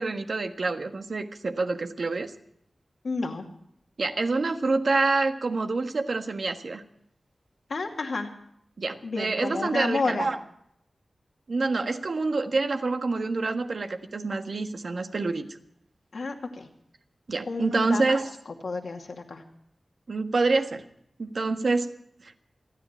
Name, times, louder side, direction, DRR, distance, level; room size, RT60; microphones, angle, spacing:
voice 1, 0.0-2.3 4.0-6.8 8.8-10.4 11.5-15.5 17.3-18.3 20.1-20.8 21.2-21.9, right 3 dB, 65° right, 6 dB, 1.5 m, -27 dB
voice 2, 3.0-3.5 7.7-8.3 9.0-10.3 16.1-16.7 17.5-18.2 18.6-19.4, left 3 dB, 70° left, 2 dB, 2.4 m, -31 dB
28.5 x 10.0 x 4.5 m, 0.72 s
wide cardioid pair, 90°, 0 cm